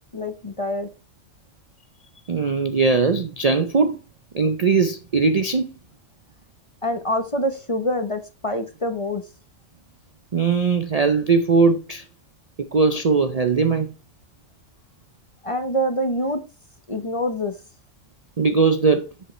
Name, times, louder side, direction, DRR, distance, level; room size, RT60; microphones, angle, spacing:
voice 1, 0.1-0.9 6.8-9.2 15.4-16.4 16.9-17.6, equal, 30° left, 0.8 m, -25 dB
voice 2, 2.3-4.0 4.3-5.7 10.3-12.0 12.6-13.9 18.4-19.1, right 4 dB, 45° right, 0.5 m, -20 dB
8.1 x 7.5 x 3.2 m
omnidirectional pair, 1.4 m